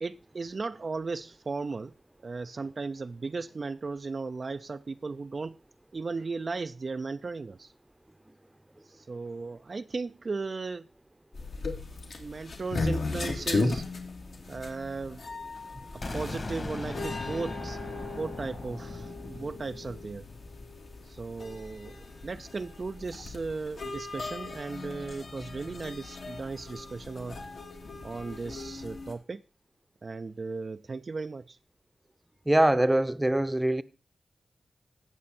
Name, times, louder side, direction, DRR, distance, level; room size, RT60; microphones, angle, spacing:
voice 1, 0.0-1.9 2.2-5.6 5.9-7.7 8.8-10.9 12.2-13.9 14.5-15.2 15.9-20.3 21.0-27.4 28.0-29.4 30.0-31.6, right 4 dB, 50° right, 0.4 m, -36 dB
sound 1, 11.3-29.1, left 3 dB, 70° left, 2.5 m, -37 dB
sound 2, 16.0-21.8, left 2 dB, 50° left, 2.8 m, -40 dB
voice 2, 32.5-33.8, right 1 dB, 15° right, 0.8 m, -23 dB
17.0 x 6.3 x 4.3 m
cardioid pair, 60°, 0 cm